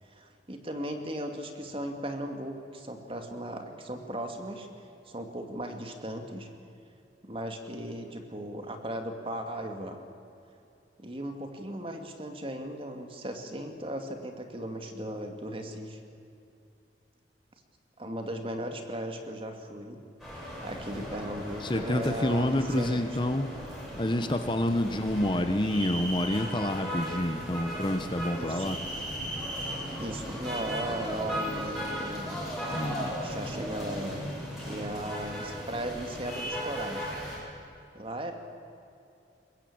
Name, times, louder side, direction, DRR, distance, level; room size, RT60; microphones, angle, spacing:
voice 1, 0.0-4.7 5.1-6.5 7.2-10.0 11.0-16.0 18.0-20.0 20.6-23.0 24.8-25.0 28.3-28.8 30.0-32.4 33.2-34.2 34.6-37.1 37.9-38.3, right 1 dB, 30° right, 5 dB, 2.3 m, -37 dB
sound 1, 20.2-37.4, equal, ahead, 7.8 m, -37 dB
voice 2, 21.6-23.5 24.0-28.8 32.7-33.1, left 1 dB, 25° left, 7 dB, 1.0 m, -28 dB
22.5 x 20.5 x 8.7 m, 2.7 s
head